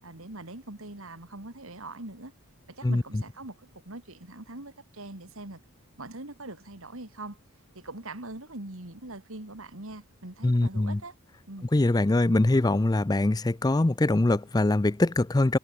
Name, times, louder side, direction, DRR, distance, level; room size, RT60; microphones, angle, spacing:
voice 1, 0.0-2.3 2.7-5.6 6.0-7.4 7.7-11.1 11.5-11.7, right 2 dB, 65° right, 2.9 m, -42 dB
voice 2, 2.8-3.2 10.4-11.0 11.7-15.6, left 2 dB, 15° left, 0.4 m, -23 dB
head